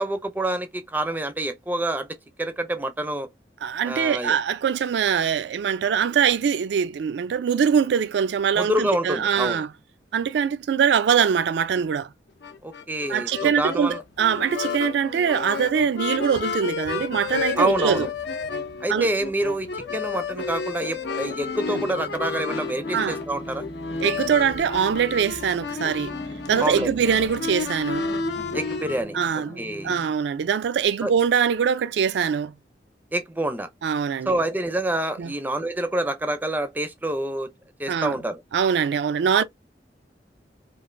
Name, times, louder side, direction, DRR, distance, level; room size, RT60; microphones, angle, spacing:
voice 1, 0.0-3.3 3.8-4.4 8.6-9.6 12.6-14.0 17.6-18.1 18.8-23.7 26.6-26.9 28.5-29.2 29.6-30.0 31.0-31.1 33.1-33.7 34.3-37.5 37.8-38.4, right 1 dB, 10° right, 0.4 m, -27 dB
voice 2, 3.6-9.7 10.1-12.1 13.1-18.1 18.9-19.1 21.7-21.8 22.9-23.2 24.0-26.2 26.5-28.1 29.1-32.5 33.8-34.4 35.2-35.3 37.9-38.2 38.5-39.4, right 7 dB, 80° right, 0.3 m, -23 dB
sound 1, 12.4-29.0, left 5 dB, 75° left, 0.6 m, -31 dB
sound 2, 21.7-30.1, equal, 50° left, 0.8 m, -42 dB
3.1 x 2.5 x 2.4 m
head